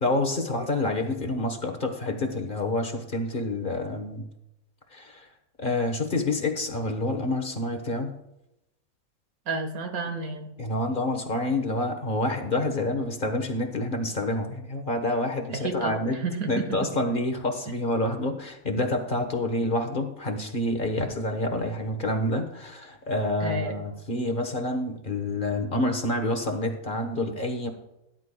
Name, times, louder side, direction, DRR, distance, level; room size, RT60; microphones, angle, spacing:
voice 1, 0.0-4.3 4.9-5.3 5.6-8.1 10.6-16.2 16.5-27.7, left 1 dB, 40° left, 4 dB, 1.3 m, -28 dB
voice 2, 9.5-10.5 15.5-16.9 23.4-23.9, right 3 dB, 85° right, 4 dB, 2.0 m, -31 dB
17.5 x 10.5 x 2.3 m, 0.88 s
omnidirectional pair, 1.5 m